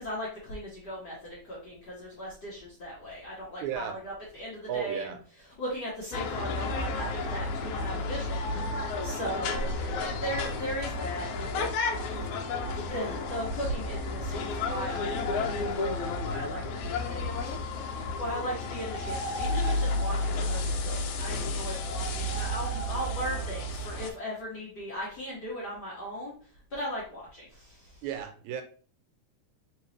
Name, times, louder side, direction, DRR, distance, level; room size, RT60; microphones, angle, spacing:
voice 1, 0.0-5.1 5.6-11.6 12.1-12.3 12.7-28.0, equal, 50° left, -6 dB, 1.3 m, -38 dB
voice 2, 3.6-4.0 4.7-5.2 28.0-28.6, right 8 dB, 85° right, 6 dB, 2.0 m, -34 dB
sound 1, 6.1-24.1, left 2 dB, 85° left, 2.0 m, -32 dB
4.1 x 3.5 x 3.1 m, 0.40 s
omnidirectional pair, 3.3 m